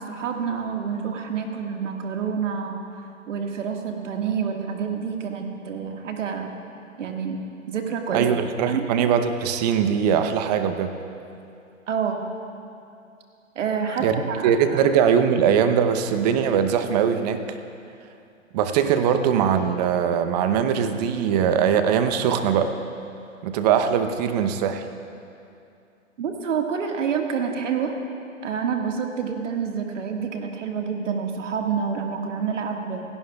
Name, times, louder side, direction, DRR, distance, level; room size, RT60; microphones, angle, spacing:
voice 1, 0.0-2.8 3.3-6.5 7.0-7.4 7.7-8.3 8.7-8.9 11.9-12.2 13.6-14.8 26.2-28.0 28.4-33.1, right 6 dB, 65° right, 3 dB, 1.8 m, -28 dB
voice 2, 8.1-10.9 14.0-17.6 18.5-22.7 23.4-24.8, right 8 dB, 30° right, 8 dB, 0.8 m, -21 dB
28.5 x 11.0 x 2.3 m, 2.6 s
hypercardioid pair, 130°, 40 cm